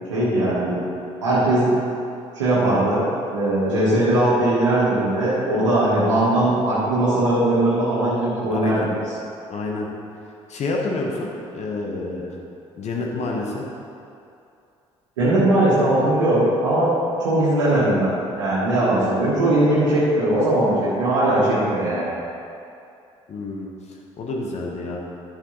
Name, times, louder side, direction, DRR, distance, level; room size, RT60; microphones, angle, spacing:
voice 1, 0.1-0.8 1.2-1.7 2.3-3.0 3.3-8.9 15.2-16.9 17.2-22.1, right 1 dB, 75° right, -10 dB, 1.6 m, -19 dB
voice 2, 8.5-8.9 9.5-9.9 10.5-12.4 12.8-13.6 23.3-25.0, left 3 dB, 45° left, -1 dB, 1.4 m, -28 dB
11.5 x 6.5 x 4.1 m, 2.6 s
figure-of-eight pair, 50°, 16 cm